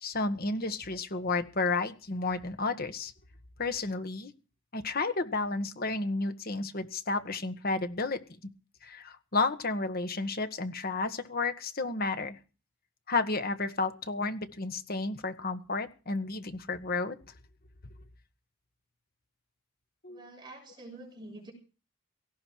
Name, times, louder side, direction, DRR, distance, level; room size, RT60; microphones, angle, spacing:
voice 1, 0.0-3.1 3.6-4.3 4.7-8.2 8.8-12.4 13.1-17.2 20.0-20.2, left 3 dB, 50° left, 9 dB, 1.6 m, -32 dB
voice 2, 20.1-21.5, right 2 dB, 20° right, 2 dB, 6.9 m, -47 dB
18.0 x 16.0 x 4.7 m, 0.35 s
head